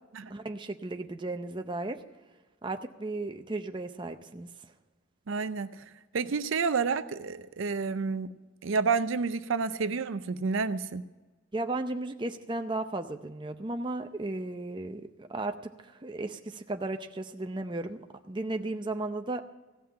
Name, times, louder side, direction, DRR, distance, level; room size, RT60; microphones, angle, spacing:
voice 1, 0.3-2.0 2.6-4.5 11.5-19.4, right 2 dB, 20° right, 6 dB, 0.6 m, -35 dB
voice 2, 5.3-8.3 8.6-11.0, right 5 dB, 65° right, 12 dB, 0.5 m, -30 dB
15.5 x 5.8 x 9.6 m, 1.2 s
head